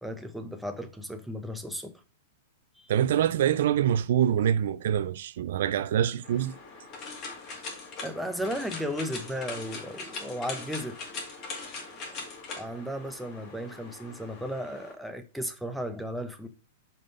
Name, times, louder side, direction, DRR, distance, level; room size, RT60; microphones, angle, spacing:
voice 1, 0.0-2.0 2.8-2.9 8.0-11.0 12.0-12.2 12.5-16.5, equal, ahead, 0.9 m, -35 dB
voice 2, 2.9-6.5, right 10 dB, 70° right, 0.4 m, -25 dB
sound 1, 6.2-14.9, left 4 dB, 35° left, 2.2 m, -41 dB
5.2 x 3.8 x 5.4 m
hypercardioid pair, 125°, 0 cm